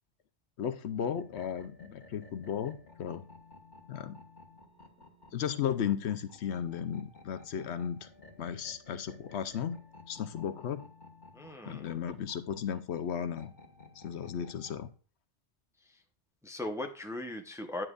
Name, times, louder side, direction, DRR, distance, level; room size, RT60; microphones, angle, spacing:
voice 1, 0.6-3.2 3.9-4.2 5.3-8.1 8.4-9.8 10.1-10.8 11.7-13.5 14.0-14.9, left 8 dB, 75° left, 11 dB, 0.9 m, -35 dB
sound 1, 1.1-14.9, left 3 dB, 40° left, 1.6 m, -55 dB
voice 2, 11.3-11.9 15.9-16.0 16.4-17.8, left 1 dB, 5° right, 4 dB, 0.7 m, -38 dB
9.7 x 7.4 x 2.4 m, 0.39 s
omnidirectional pair, 1.2 m